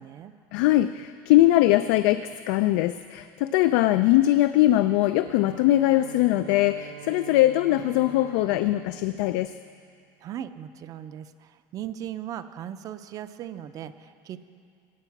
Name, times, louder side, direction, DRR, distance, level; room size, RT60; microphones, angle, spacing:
voice 1, 0.0-0.3 10.2-14.5, right 10 dB, 40° right, 12 dB, 0.5 m, -38 dB
voice 2, 0.5-9.5, left 15 dB, 85° left, 12 dB, 0.4 m, -21 dB
Bowed string instrument, 4.8-10.0, right 12 dB, 70° right, 1.0 m, -46 dB
16.0 x 9.8 x 5.9 m, 2.3 s
cardioid pair, 150°, 10 cm